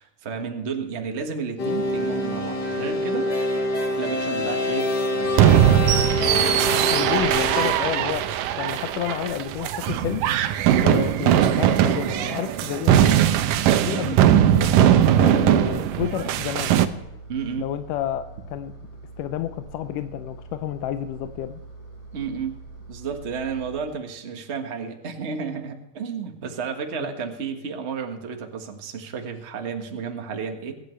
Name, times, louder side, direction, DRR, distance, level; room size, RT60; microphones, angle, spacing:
voice 1, 0.0-3.3 3.9-5.9 6.2-6.5 14.0-14.2 17.3-17.7 22.1-22.6 22.9-30.7, right 6 dB, 55° right, 4 dB, 0.7 m, -32 dB
sound 1, 1.6-7.7, left 1 dB, 40° left, 1.9 m, -26 dB
sound 2, 5.3-16.9, right 11 dB, 85° right, 2.4 m, -20 dB
voice 2, 6.9-10.3 10.7-13.2 13.9-16.8 17.6-18.7 19.2-21.6 27.0-27.1, left 11 dB, 80° left, 9 dB, 2.2 m, -30 dB
Engine, 14.2-23.8, right 3 dB, 15° left, 5.9 m, -43 dB
23.5 x 10.0 x 3.2 m, 0.95 s
omnidirectional pair, 3.8 m